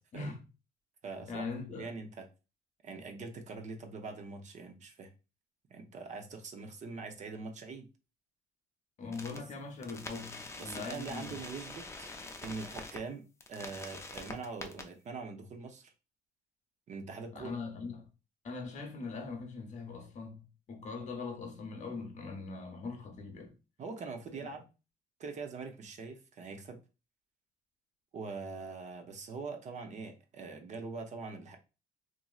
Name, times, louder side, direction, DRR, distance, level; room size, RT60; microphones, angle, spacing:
voice 1, 0.1-0.4 1.3-1.9 9.0-11.3 17.3-18.0 18.4-23.5, left 4 dB, 45° left, 0.8 m, -41 dB
voice 2, 1.0-1.5 1.8-2.3 2.8-5.1 5.7-7.9 10.6-12.1 12.4-13.2 13.5-15.9 16.9-17.5 23.8-24.7 25.2-26.8 28.1-31.6, right 4 dB, 45° right, 0.6 m, -43 dB
sound 1, 9.1-9.4 9.8-13.0 13.4-14.8, left 3 dB, 15° left, 0.4 m, -45 dB
2.9 x 2.6 x 2.3 m
cardioid pair, 110°, 17 cm